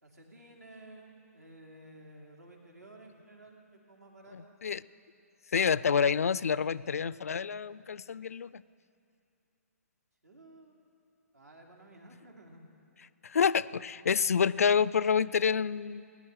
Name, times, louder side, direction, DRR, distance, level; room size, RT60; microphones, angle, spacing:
voice 1, 0.0-4.6 10.2-10.8 11.3-12.6, right 1 dB, 80° right, 0 dB, 2.8 m, -53 dB
voice 2, 4.3-4.8 5.5-8.6 13.2-16.0, left 6 dB, 65° left, 19 dB, 0.3 m, -28 dB
19.5 x 9.8 x 6.3 m, 2.5 s
figure-of-eight pair, 130°, 9 cm